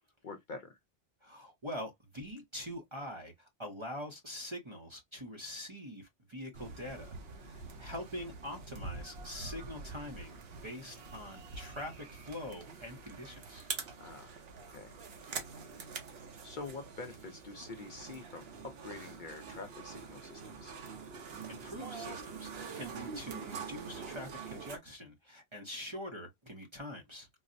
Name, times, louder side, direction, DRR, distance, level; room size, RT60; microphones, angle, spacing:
voice 1, 0.2-0.8 14.0-14.4 14.7-14.9 16.4-20.7, left 3 dB, 55° left, 0.6 m, -46 dB
voice 2, 1.2-10.3 10.6-13.7 15.2-15.4 21.3-27.3, left 1 dB, 30° right, 0.6 m, -44 dB
sound 1, 6.5-24.8, right 5 dB, 65° right, 1.0 m, -45 dB
3.8 x 2.0 x 2.4 m
omnidirectional pair, 1.2 m